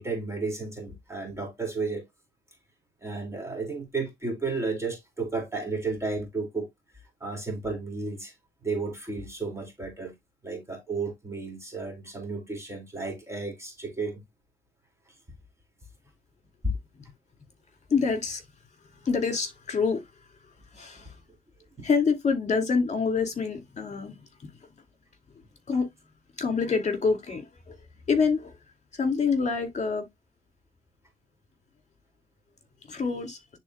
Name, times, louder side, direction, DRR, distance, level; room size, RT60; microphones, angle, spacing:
voice 1, 0.0-2.0 3.0-6.7 7.2-8.3 8.6-10.1 10.4-14.2 16.6-16.7 21.8-21.9, right 3 dB, 15° right, 2.4 m, -33 dB
voice 2, 17.9-18.4 19.0-20.0 20.7-21.1 21.8-24.1 25.7-25.9 26.4-27.8 28.1-28.5 28.9-30.0 32.9-33.4, left 5 dB, 35° left, 2.6 m, -26 dB
10.5 x 3.9 x 2.3 m
cardioid pair, 90°, 20 cm